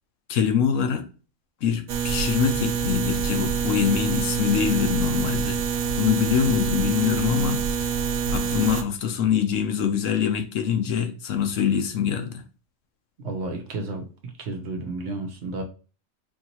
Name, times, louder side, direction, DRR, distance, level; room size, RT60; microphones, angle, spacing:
voice 1, 0.3-1.1 1.6-5.6 6.0-8.0 8.3-12.4, left 8 dB, 70° left, 0.9 m, -24 dB
sound 1, 1.9-8.8, right 6 dB, 80° right, 1.0 m, -26 dB
voice 2, 13.2-15.6, right 2 dB, 55° right, 1.0 m, -32 dB
4.5 x 2.9 x 2.8 m
omnidirectional pair, 1.5 m